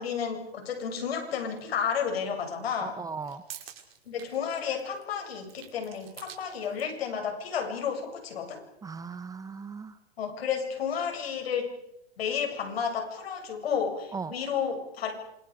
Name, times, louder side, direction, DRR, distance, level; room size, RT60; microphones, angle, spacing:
voice 1, 0.0-3.0 4.1-8.6 10.2-11.7 12.2-15.1, left 7 dB, 70° left, 4 dB, 7.6 m, -31 dB
sound 1, 1.6-1.7 3.0-7.0, right 10 dB, 65° right, 5.4 m, -48 dB
voice 2, 2.8-3.4 8.8-9.9 14.1-14.4, right 5 dB, 10° right, 12 dB, 1.1 m, -37 dB
27.5 x 27.0 x 5.2 m, 0.81 s
hypercardioid pair, 130°, 31 cm